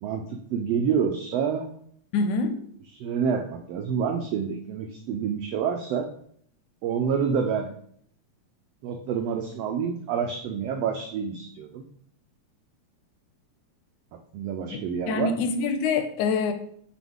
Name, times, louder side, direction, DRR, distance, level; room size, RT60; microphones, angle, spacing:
voice 1, 0.0-1.7 3.0-6.1 6.8-7.7 8.8-11.8 14.3-15.3, right 7 dB, 90° right, 3 dB, 1.4 m, -28 dB
voice 2, 2.1-2.6 14.7-16.5, left 4 dB, 85° left, 8 dB, 2.1 m, -26 dB
6.1 x 4.3 x 3.6 m, 0.64 s
omnidirectional pair, 3.4 m